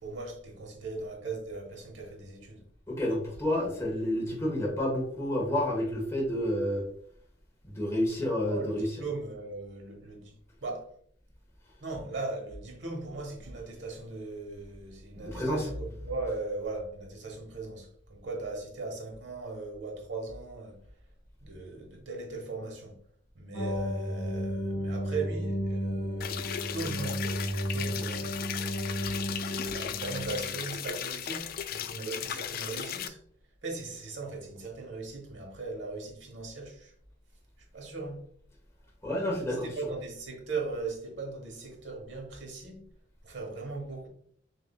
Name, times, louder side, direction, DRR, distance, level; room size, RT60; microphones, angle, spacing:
voice 1, 0.0-2.6 8.4-10.3 10.6-10.9 11.8-20.8 21.4-23.0 23.3-29.0 29.6-33.2 33.6-36.9 37.7-38.3 39.6-42.8 43.2-44.1, right 3 dB, 70° right, 1.2 m, -38 dB
voice 2, 2.9-6.8 7.7-8.9 15.2-15.6 39.0-39.7, left 1 dB, 15° left, 1.2 m, -29 dB
sound 1, 23.5-30.6, equal, 30° left, 1.7 m, -33 dB
sound 2, 26.2-33.1, left 9 dB, 50° left, 0.3 m, -36 dB
6.6 x 2.6 x 2.3 m
head